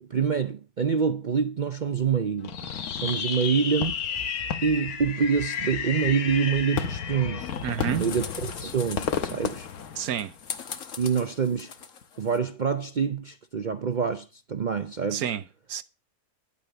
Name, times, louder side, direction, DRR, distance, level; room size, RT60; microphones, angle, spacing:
voice 1, 0.0-2.6 2.9-4.0 4.6-7.5 7.9-8.3 8.6-9.7 11.0-11.7 12.2-15.2, right 6 dB, 50° right, 0.5 m, -26 dB
Fireworks, 2.4-10.6, left 7 dB, 85° left, 1.5 m, -32 dB
sound 1, 3.8-8.4, right 1 dB, 35° left, 1.8 m, -45 dB
sound 2, 7.4-12.4, left 6 dB, 60° left, 1.5 m, -41 dB
voice 2, 7.6-8.1 9.9-10.3 15.1-15.8, right 9 dB, 85° right, 1.4 m, -30 dB
10.5 x 8.2 x 6.7 m
omnidirectional pair, 1.5 m